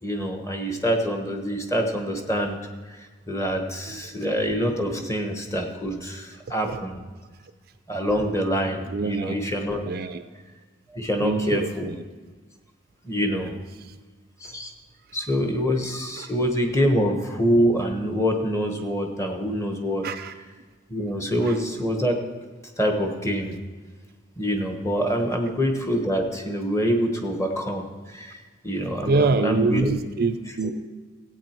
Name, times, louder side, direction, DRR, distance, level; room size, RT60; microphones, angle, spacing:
voice 1, 0.0-2.6 2.9-3.0 3.3-7.0 7.9-9.8 10.9-11.9 13.0-13.5 14.4-14.7 15.1-20.1 20.9-22.2 22.8-23.5 24.4-28.4 28.6-29.9 30.6-30.7, equal, 15° left, 3 dB, 1.2 m, -25 dB
voice 2, 3.9-4.2 4.8-5.1 6.7-6.8 8.9-9.3 9.8-10.2 11.2-12.0 13.2-13.6 16.2-16.3 20.0-20.3 21.5-21.6 29.0-30.7, right 3 dB, 50° right, 10 dB, 0.4 m, -26 dB
15.5 x 8.4 x 4.5 m, 1.4 s
head